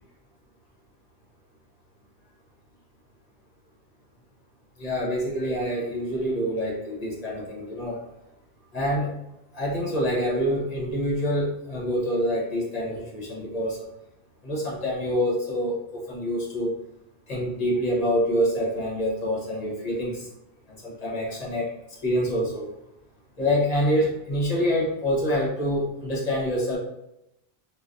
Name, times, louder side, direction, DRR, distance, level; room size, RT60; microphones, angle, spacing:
voice 1, 4.8-8.0 8.7-9.1 9.5-13.9 14.4-16.7 17.3-20.3 20.8-21.7 22.0-22.7 23.4-26.8, equal, 40° left, -4 dB, 1.0 m, -26 dB
3.2 x 2.5 x 2.5 m, 0.86 s
omnidirectional pair, 1.1 m